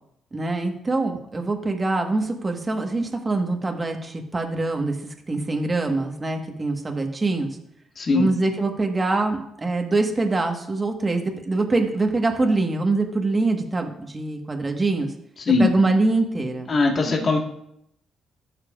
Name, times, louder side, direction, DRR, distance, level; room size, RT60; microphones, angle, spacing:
voice 1, 0.3-7.6 8.1-15.1 15.6-16.7, right 2 dB, 25° right, 3 dB, 1.5 m, -24 dB
voice 2, 8.0-8.3 15.4-15.7 16.7-17.4, left 3 dB, 40° left, 1 dB, 1.7 m, -20 dB
15.5 x 6.6 x 2.5 m, 0.76 s
cardioid pair, 90°, 0 cm